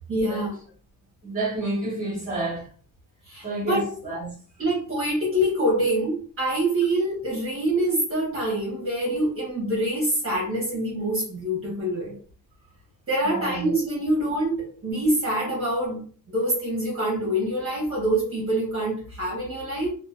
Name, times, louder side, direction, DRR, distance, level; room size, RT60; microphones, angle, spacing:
voice 1, 0.1-0.6 3.3-3.9 4.6-12.1 13.1-16.0 16.3-19.9, right 1 dB, 40° right, 1.1 m, -25 dB
voice 2, 1.2-2.7 3.4-4.3 13.2-13.7, right 2 dB, 25° right, 1.3 m, -29 dB
2.8 x 2.3 x 2.3 m
wide cardioid pair, 140°, 33 cm